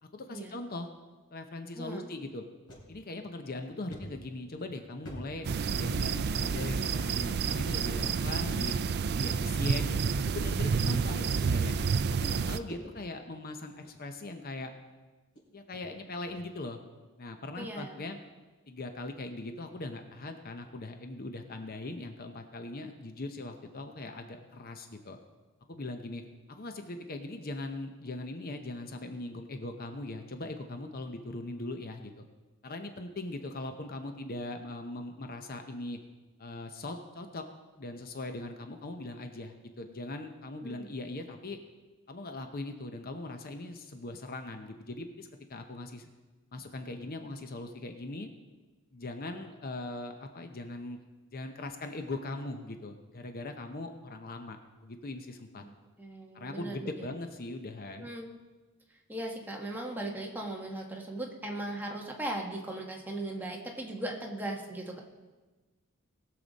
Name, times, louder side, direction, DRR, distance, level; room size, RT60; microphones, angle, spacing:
voice 1, 0.0-0.9 1.3-2.4 2.9-8.7 9.1-10.0 10.3-11.7 12.1-14.7 15.5-16.8 17.2-18.2 18.7-25.2 25.7-26.2 26.5-32.2 32.6-36.0 36.4-37.4 37.8-41.6 42.1-46.1 46.5-48.3 48.9-51.0 51.3-55.6 56.3-58.1, left 2 dB, 45° left, 6 dB, 0.8 m, -40 dB
voice 2, 1.7-2.1 17.6-18.1 40.6-40.9 55.6-55.7 56.0-57.1 58.0-58.3 59.1-65.0, right 1 dB, 10° right, -1 dB, 1.4 m, -38 dB
sound 1, 2.7-2.9 3.3-3.4 3.9-5.9 6.5-6.7 7.0-7.1 7.9-8.4 9.3-9.8 10.7-10.8 11.7-11.8 12.1-13.3 13.7-14.0 14.8-14.9 15.3-15.4 15.7-15.8 16.3-16.5, equal, 70° left, 3.8 m, -48 dB
sound 2, 5.4-12.6, right 5 dB, 50° right, 0.4 m, -29 dB
20.0 x 6.9 x 4.1 m, 1.3 s
head